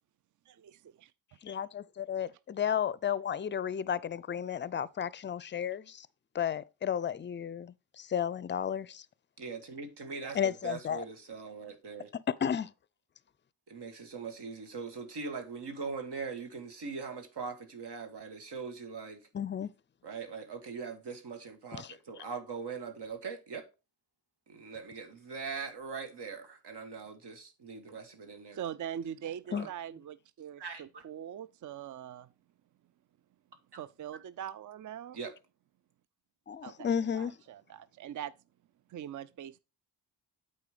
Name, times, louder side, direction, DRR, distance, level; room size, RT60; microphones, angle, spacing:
voice 1, 0.5-1.1 28.5-32.3 33.8-35.2 36.6-38.3 38.9-39.6, right 9 dB, 50° right, 0.5 m, -42 dB
voice 2, 1.4-6.1 6.3-9.1 10.3-11.0 12.1-12.7 19.3-19.7 21.8-22.0 29.5-29.7 36.5-37.4, left 8 dB, 30° left, 0.4 m, -33 dB
voice 3, 9.4-12.1 13.7-19.2 20.0-23.7 24.5-28.6 29.5-29.7 30.6-31.0 35.1-35.3, right 5 dB, 70° right, 1.6 m, -41 dB
8.5 x 4.2 x 5.0 m
cardioid pair, 55°, 41 cm